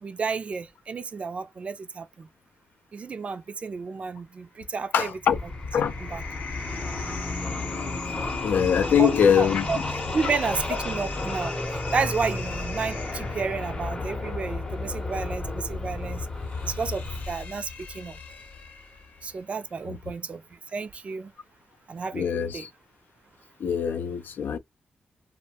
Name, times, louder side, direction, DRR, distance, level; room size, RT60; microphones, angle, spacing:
voice 1, 0.0-2.3 2.9-5.1 6.0-6.2 8.9-9.8 10.1-11.6 11.9-16.3 16.6-18.2 19.2-21.3 21.9-22.7, right 5 dB, 40° right, 0.3 m, -31 dB
sound 1, 4.8-19.4, left 4 dB, 70° left, 0.7 m, -41 dB
voice 2, 4.9-5.4 5.7-5.9 8.4-9.8 19.9-20.0 22.1-22.7 23.6-24.6, left 8 dB, 90° left, 0.4 m, -23 dB
sound 2, 5.2-17.3, left 2 dB, 30° left, 0.7 m, -32 dB
2.3 x 2.1 x 2.7 m
wide cardioid pair, 135°, 3 cm